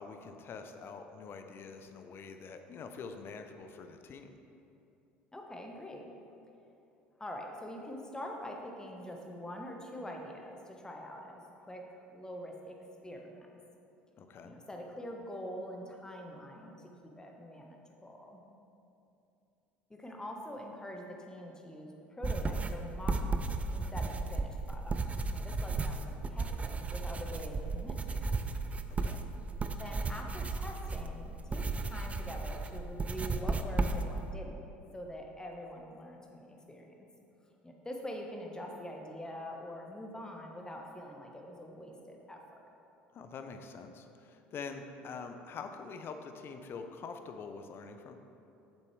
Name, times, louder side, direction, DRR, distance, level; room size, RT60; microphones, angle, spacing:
voice 1, 0.0-4.3 14.2-14.5 29.0-29.2 43.1-48.2, left 5 dB, 45° left, 7 dB, 0.6 m, -45 dB
voice 2, 5.3-6.0 7.2-11.8 12.1-13.5 14.4-18.4 19.9-23.4 23.7-25.0 25.3-28.2 29.7-37.0 37.6-42.7, equal, 10° left, 1 dB, 1.2 m, -45 dB
sound 1, 22.2-34.3, right 3 dB, 25° right, 0.5 m, -34 dB
8.3 x 6.7 x 3.3 m, 2.8 s
hypercardioid pair, 65°, 5 cm